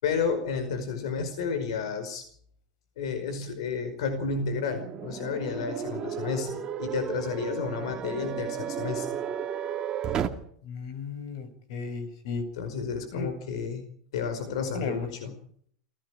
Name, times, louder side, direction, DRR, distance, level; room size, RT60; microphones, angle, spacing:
voice 1, 0.0-2.2 3.0-9.1 12.5-13.8 14.1-15.3, left 5 dB, 90° left, 7 dB, 5.1 m, -31 dB
sound 1, 4.2-10.3, right 8 dB, 25° right, 2.2 m, -34 dB
voice 2, 10.6-12.4 13.1-13.3 14.7-15.1, left 4 dB, 65° left, 9 dB, 7.0 m, -34 dB
29.5 x 18.5 x 5.1 m, 0.62 s
supercardioid pair, 155°, 3 cm